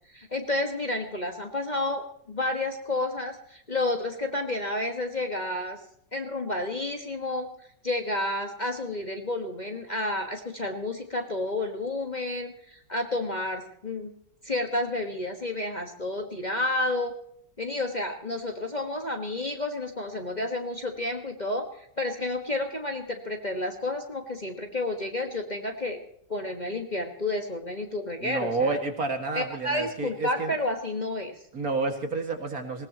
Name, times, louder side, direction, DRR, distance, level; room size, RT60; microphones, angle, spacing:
voice 1, 0.1-5.8 6.1-7.5 7.8-14.1 14.4-17.1 17.6-26.0 26.3-28.8 29.3-31.4, left 2 dB, 25° left, 3 dB, 1.4 m, -30 dB
voice 2, 28.2-30.6 31.5-32.9, right 3 dB, 55° right, 5 dB, 2.3 m, -30 dB
20.0 x 18.5 x 2.9 m, 0.68 s
omnidirectional pair, 1.9 m